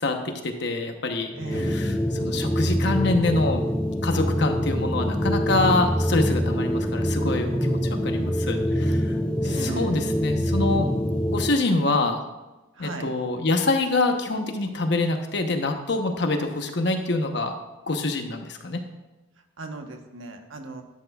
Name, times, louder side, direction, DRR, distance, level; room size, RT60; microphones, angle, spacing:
voice 1, 0.0-3.6 4.0-9.2 9.4-10.9 11.3-12.3 12.8-17.5 17.9-18.8, left 2 dB, 60° left, 5 dB, 1.0 m, -26 dB
sound 1, 1.3-11.6, equal, 5° left, 0.5 m, -25 dB
voice 2, 1.4-1.8 9.4-9.9 12.8-13.0 19.6-20.8, right 3 dB, 80° right, 4 dB, 1.2 m, -36 dB
11.5 x 11.0 x 2.4 m, 1.1 s
head